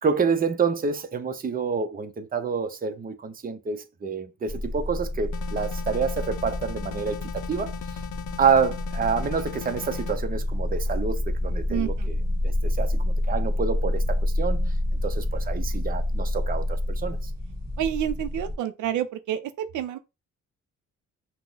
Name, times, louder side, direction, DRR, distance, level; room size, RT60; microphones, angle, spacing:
voice 1, 0.0-7.7 8.4-11.9 12.4-14.7 15.0-17.3, right 5 dB, 30° right, 0.8 m, -28 dB
sound 1, 4.5-18.5, left 1 dB, 10° right, 2.3 m, -28 dB
sound 2, 5.3-10.2, left 10 dB, 75° left, 0.5 m, -38 dB
voice 2, 11.7-12.1 17.8-20.0, right 10 dB, 75° right, 0.6 m, -29 dB
5.8 x 2.3 x 3.9 m
cardioid pair, 90°, 30 cm